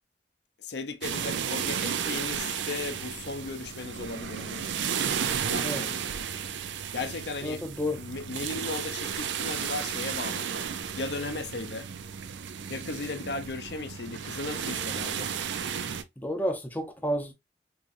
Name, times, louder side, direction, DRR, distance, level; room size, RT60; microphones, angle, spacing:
voice 1, 0.6-4.6 5.5-6.0 6.9-7.7 8.0-10.7 11.0-11.9 12.7-15.3, left 3 dB, 70° left, 0.6 m, -36 dB
sound 1, 1.0-16.0, right 7 dB, 85° right, 0.5 m, -33 dB
voice 2, 7.4-8.0 16.2-17.3, equal, 10° left, 0.6 m, -30 dB
3.8 x 3.0 x 2.5 m
head